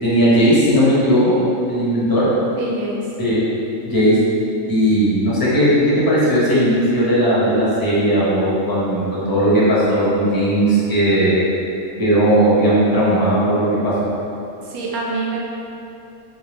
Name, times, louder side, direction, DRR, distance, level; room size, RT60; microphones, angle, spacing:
voice 1, 0.0-1.3 1.7-2.3 3.2-3.4 3.8-4.2 4.7-5.7 6.1-11.3 12.0-14.1, right 1 dB, 20° left, -8 dB, 0.7 m, -17 dB
voice 2, 2.6-3.0 14.6-15.4, right 3 dB, 80° right, -3 dB, 1.1 m, -25 dB
3.6 x 2.7 x 3.2 m, 2.8 s
omnidirectional pair, 1.5 m